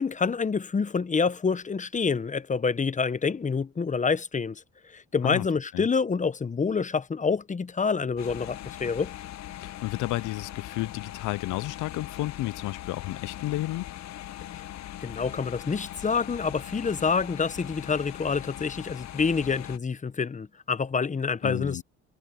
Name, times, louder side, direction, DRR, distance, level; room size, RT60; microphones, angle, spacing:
voice 1, 0.0-9.1 15.0-21.8, left 5 dB, 25° left, 0.8 m, -27 dB
sound 1, 8.2-19.8, left 13 dB, 65° left, 0.8 m, -40 dB
voice 2, 9.6-13.9 21.4-21.8, left 17 dB, 85° left, 0.6 m, -32 dB
cardioid pair, 90°, 30 cm